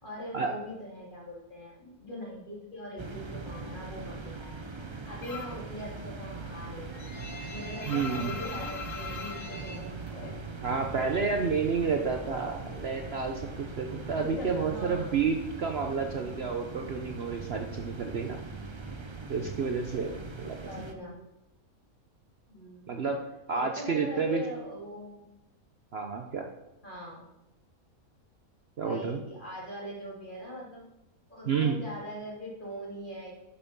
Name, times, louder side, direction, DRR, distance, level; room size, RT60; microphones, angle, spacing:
voice 1, 0.0-4.6 4.9-7.2 7.5-9.9 12.6-12.8 14.6-15.2 20.6-21.2 22.5-22.9 23.5-25.2 26.8-27.3 28.8-30.9 31.3-33.3, equal, 35° left, -4 dB, 3.3 m, -42 dB
sound 1, 3.0-20.9, right 3 dB, 25° right, 0.6 m, -41 dB
sound 2, 5.2-5.7 6.0-10.9 11.1-12.2 12.5-15.3, left 4 dB, 60° left, 1.6 m, -42 dB
voice 2, 7.9-8.3 10.6-18.4 19.3-20.6 22.9-23.2 23.5-24.4 25.9-26.5 28.8-29.2 31.4-31.8, right 5 dB, 50° right, 4 dB, 1.0 m, -30 dB
11.0 x 6.8 x 5.3 m, 0.93 s
omnidirectional pair, 1.5 m